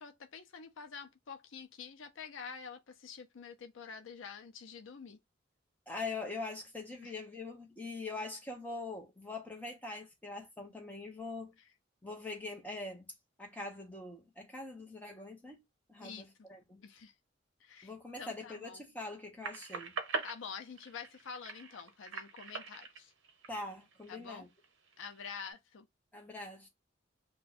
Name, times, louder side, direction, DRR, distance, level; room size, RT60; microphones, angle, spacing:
voice 1, 0.0-5.2 7.0-7.1 16.0-16.3 16.8-17.1 17.6-17.9 18.2-18.8 20.2-23.1 24.1-24.5 25.0-25.8, left 6 dB, 75° left, 0.5 m, -47 dB
voice 2, 5.9-11.5 12.0-13.1 13.4-15.6 15.9-16.8 17.8-20.0 23.5-24.5 26.1-26.7, left 3 dB, 10° left, 0.9 m, -43 dB
sound 1, 19.4-24.1 24.6-25.5, right 3 dB, 80° right, 0.8 m, -42 dB
2.6 x 2.2 x 4.0 m
head